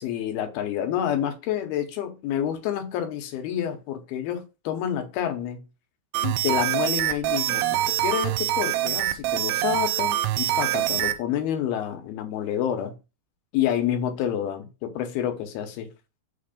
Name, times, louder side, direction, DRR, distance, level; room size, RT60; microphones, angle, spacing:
voice 1, 0.0-5.6 6.2-12.9 13.5-15.9, left 10 dB, 75° left, 2.7 m, -28 dB
sound 1, 6.1-11.2, right 14 dB, 90° right, 2.7 m, -25 dB
6.6 x 3.2 x 5.1 m
omnidirectional pair, 4.7 m